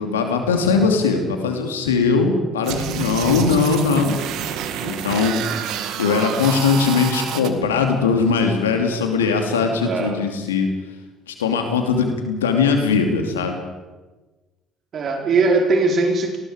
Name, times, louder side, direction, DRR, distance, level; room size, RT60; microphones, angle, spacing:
voice 1, 0.0-4.2 4.8-5.4 6.0-10.7 11.3-13.6, left 5 dB, 85° left, 4 dB, 2.7 m, -20 dB
sound 1, 2.6-7.5, right 9 dB, 65° right, 1.9 m, -28 dB
voice 2, 9.8-10.2 14.9-16.4, right 3 dB, 50° right, 2 dB, 4.5 m, -19 dB
27.0 x 20.0 x 5.1 m, 1.2 s
hypercardioid pair, 55°, 0 cm